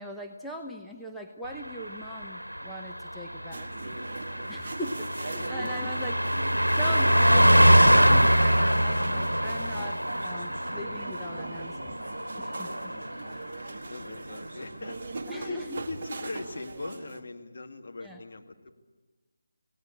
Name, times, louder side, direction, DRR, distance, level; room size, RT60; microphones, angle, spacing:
voice 1, 0.0-3.7 4.5-6.1 6.7-12.0 12.4-12.7 15.3-15.8 18.0-18.2, equal, ahead, -2 dB, 0.8 m, -40 dB
Car passing by, 1.5-13.5 13.8-14.0, equal, 90° right, 1.1 m, -24 dB
sound 1, 3.5-17.2, right 3 dB, 35° right, 1.5 m, -41 dB
voice 2, 4.8-6.0 9.0-9.4 12.9-13.6 13.9-15.0 15.3-18.7, left 3 dB, 50° left, 3 dB, 2.2 m, -41 dB
27.0 x 18.0 x 8.7 m, 1.3 s
figure-of-eight pair, 155°, 0 cm